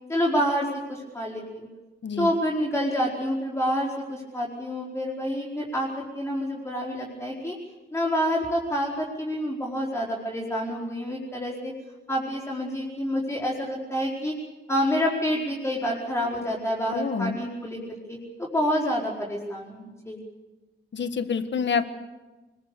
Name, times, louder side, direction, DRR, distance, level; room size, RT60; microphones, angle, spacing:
voice 1, 0.1-1.7 2.2-7.5 7.9-11.7 12.1-14.3 14.7-17.8 18.1-20.2, equal, 15° left, -6 dB, 4.9 m, -28 dB
voice 2, 16.9-17.4 20.9-21.9, left 6 dB, 70° left, 9 dB, 1.7 m, -27 dB
25.0 x 21.5 x 6.9 m, 1.2 s
wide cardioid pair, 135°, 19 cm